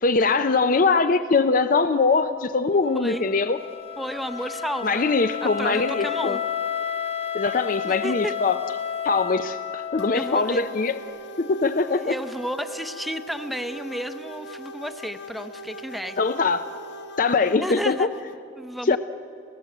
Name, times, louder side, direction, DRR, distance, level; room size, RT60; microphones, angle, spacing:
voice 1, 0.0-3.6 4.8-6.4 7.3-8.6 9.0-11.0 11.4-12.1 16.2-16.6 17.2-18.1 18.8-19.0, left 4 dB, 50° left, 10 dB, 0.6 m, -22 dB
Wind instrument woodwind instrument, 2.8-10.9, left 8 dB, 35° left, 1.0 m, -31 dB
voice 2, 4.0-5.1 5.4-6.4 7.8-8.3 10.1-10.6 12.0-16.2 17.6-18.1 18.6-19.0, equal, ahead, 8 dB, 0.8 m, -32 dB
sound 1, 10.0-18.4, equal, 75° left, 1.0 m, -41 dB
29.0 x 16.0 x 7.9 m, 2.8 s
head